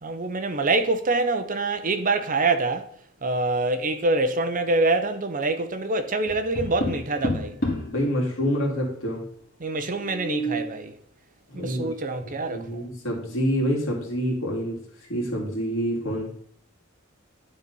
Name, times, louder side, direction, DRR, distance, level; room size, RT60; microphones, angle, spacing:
voice 1, 0.0-2.9 3.2-7.6 9.6-10.9 11.5-12.9, right 2 dB, 40° right, 0.8 m, -25 dB
Tap, 6.3-8.0 10.0-10.7, equal, 50° left, 2.4 m, -29 dB
voice 2, 7.9-9.3 11.5-11.9 12.2-14.8 15.1-16.3, equal, 70° left, 2.8 m, -27 dB
11.0 x 4.2 x 5.4 m
head